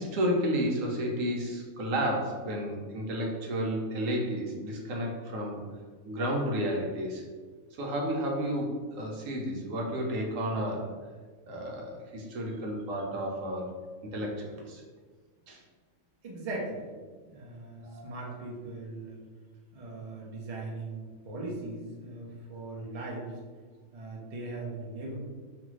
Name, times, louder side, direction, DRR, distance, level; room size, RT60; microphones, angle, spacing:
voice 1, 0.0-5.6 6.0-7.2 7.8-10.9 11.5-13.7 14.1-14.8 15.5-15.6 17.8-18.0, equal, 75° right, -1 dB, 1.0 m, -31 dB
voice 2, 16.2-16.8 17.3-19.2 19.7-23.3 23.9-25.2, right 2 dB, 55° right, -3 dB, 0.4 m, -39 dB
2.6 x 2.4 x 3.0 m, 1.5 s
omnidirectional pair, 1.4 m